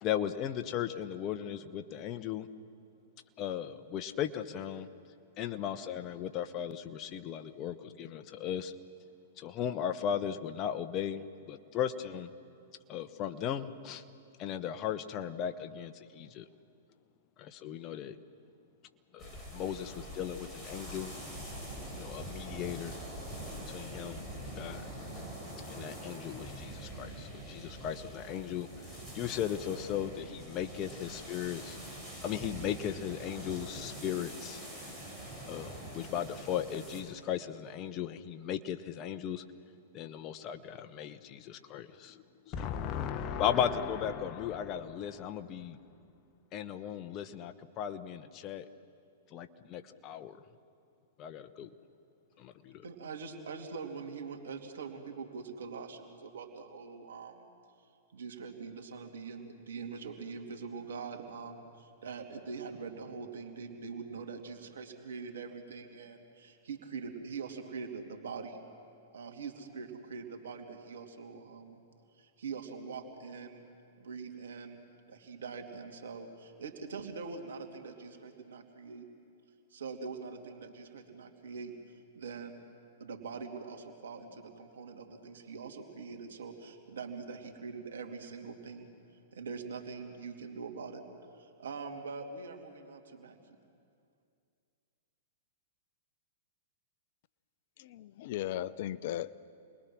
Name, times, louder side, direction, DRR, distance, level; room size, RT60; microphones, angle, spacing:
voice 1, 0.0-2.5 3.4-4.9 5.4-8.7 9.4-12.3 12.9-14.0 14.4-16.5 17.4-18.2 19.1-21.1 21.9-23.0 23.7-24.9 25.7-28.7 29.1-31.8 32.2-34.6 35.5-39.4 39.9-45.8 46.5-48.7 49.3-50.4 51.2-51.7 52.4-52.8, left 9 dB, 35° left, 9 dB, 1.1 m, -36 dB
sound 1, 19.2-37.0, right 1 dB, 10° left, 6.7 m, -44 dB
voice 2, 52.8-57.5 58.1-68.6 69.1-71.8 72.2-73.6 74.0-74.8 75.1-79.1 79.7-82.6 83.0-88.9 89.3-91.0 91.3-93.6, right 5 dB, 75° right, 4 dB, 2.8 m, -43 dB
voice 3, 97.9-99.3, left 12 dB, 55° left, 17 dB, 0.6 m, -36 dB
29.0 x 21.5 x 6.2 m, 2.4 s
hypercardioid pair, 115°, 0 cm